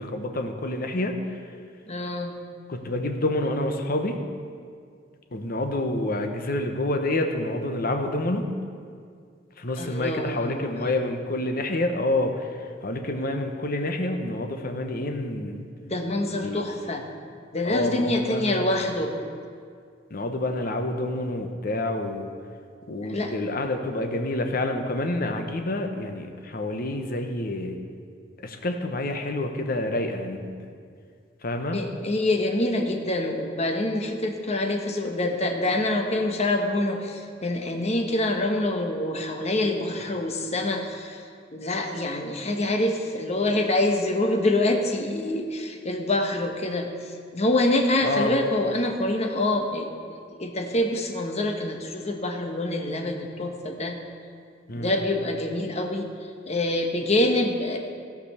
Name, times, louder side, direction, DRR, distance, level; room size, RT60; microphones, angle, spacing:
voice 1, 0.0-1.4 2.7-4.2 5.3-8.5 9.6-12.5 12.8-15.7 16.4-16.6 17.6-18.8 20.1-22.3 22.9-27.8 28.4-30.5 31.4-31.8 48.0-48.4 54.7-54.9, left 1 dB, 50° left, 5 dB, 1.0 m, -28 dB
voice 2, 1.9-2.4 9.8-10.7 15.8-17.0 17.5-19.1 23.0-23.3 31.7-41.2 41.5-46.9 47.3-49.9 50.4-54.0 54.7-56.1 56.5-57.8, left 1 dB, 35° left, 3 dB, 1.1 m, -26 dB
15.0 x 5.2 x 6.6 m, 2.2 s
head